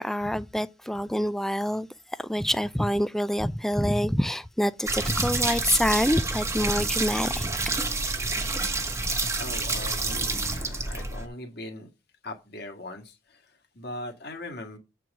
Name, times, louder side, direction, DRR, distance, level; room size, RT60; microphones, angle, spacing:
voice 1, 0.0-1.9 2.2-7.5, equal, ahead, 0.4 m, -26 dB
sound 1, 4.9-11.3, right 3 dB, 15° right, 1.1 m, -28 dB
voice 2, 8.7-11.9 12.2-14.8, left 1 dB, 60° left, 2.0 m, -40 dB
7.9 x 4.6 x 6.0 m
head